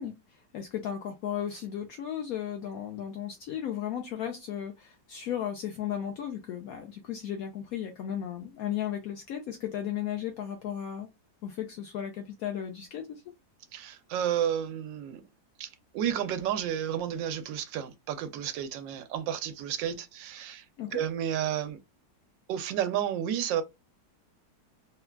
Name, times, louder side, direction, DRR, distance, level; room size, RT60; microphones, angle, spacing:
voice 1, 0.0-11.1 11.4-13.2 20.8-21.0, left 10 dB, 75° left, 0.8 m, -35 dB
voice 2, 13.7-15.2 15.6-20.7 20.9-21.8 22.5-23.6, right 10 dB, 80° right, 1.3 m, -31 dB
3.4 x 2.2 x 2.2 m
omnidirectional pair, 2.0 m